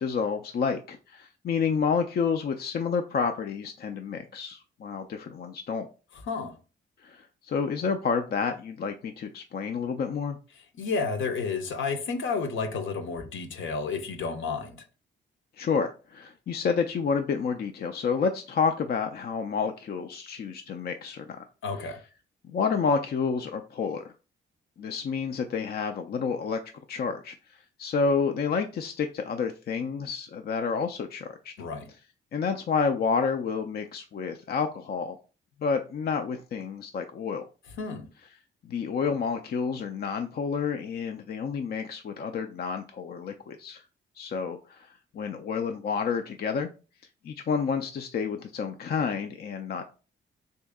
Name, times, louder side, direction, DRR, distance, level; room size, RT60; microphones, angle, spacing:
voice 1, 0.0-5.9 7.0-10.4 15.6-21.4 22.5-24.0 24.8-26.6 26.9-27.4 27.8-31.5 32.3-35.2 35.6-37.5 38.7-43.8 44.2-46.7 47.2-49.9, left 5 dB, 50° left, 0.4 m, -29 dB
voice 2, 10.7-14.8 21.6-22.0 31.6-31.9 37.8-38.1, left 4 dB, 70° left, 0.8 m, -31 dB
3.0 x 2.7 x 3.5 m
cardioid pair, 65°, 21 cm